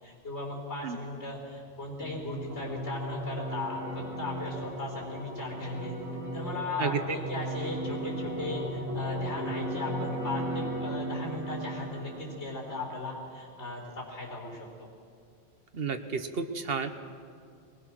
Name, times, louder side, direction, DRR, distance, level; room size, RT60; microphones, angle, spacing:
voice 1, 0.0-6.0 6.3-14.7, left 2 dB, 80° left, 0 dB, 4.8 m, -37 dB
sound 1, 2.0-13.0, right 1 dB, 65° left, 5.8 m, -36 dB
voice 2, 15.7-17.0, right 5 dB, 60° right, 9 dB, 1.2 m, -31 dB
21.5 x 19.5 x 6.1 m, 2.3 s
omnidirectional pair, 1.1 m